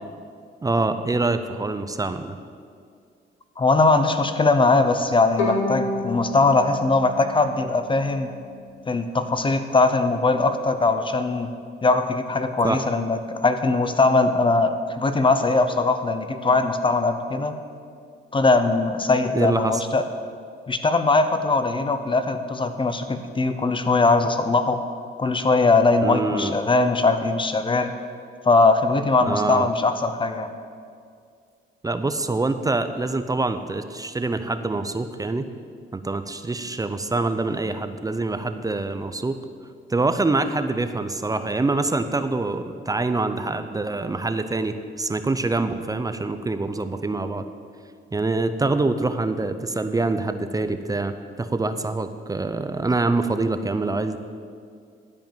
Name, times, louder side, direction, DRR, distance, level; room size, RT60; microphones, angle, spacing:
voice 1, 0.6-2.4 12.6-12.8 19.3-19.8 26.0-26.5 29.2-29.6 31.8-35.5 35.9-39.4 39.9-47.4 48.1-54.2, right 3 dB, 20° right, 9 dB, 0.6 m, -25 dB
voice 2, 3.6-8.3 8.9-11.5 11.8-17.5 18.3-20.0 20.7-24.8 25.2-27.9 28.4-30.5, left 3 dB, 25° left, 9 dB, 0.9 m, -20 dB
Bowed string instrument, 5.4-8.4, left 3 dB, 80° left, 2.6 m, -30 dB
12.0 x 5.2 x 8.9 m, 2.2 s
cardioid pair, 90°, 20 cm